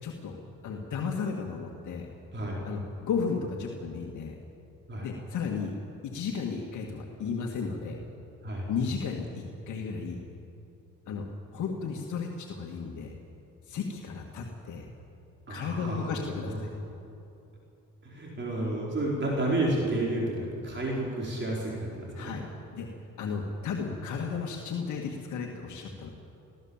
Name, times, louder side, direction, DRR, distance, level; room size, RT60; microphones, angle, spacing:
voice 1, 0.0-0.4 0.6-2.1 2.6-4.3 5.0-5.7 6.0-8.0 8.7-10.2 11.1-11.3 11.5-13.1 13.7-14.9 15.5-16.7 22.2-22.5 22.7-26.1, left 5 dB, 75° left, 1 dB, 1.9 m, -34 dB
voice 2, 15.5-16.6 18.0-22.3, right 1 dB, 40° right, -3 dB, 5.0 m, -31 dB
23.5 x 16.0 x 7.4 m, 2.8 s
cardioid pair, 90°, 30 cm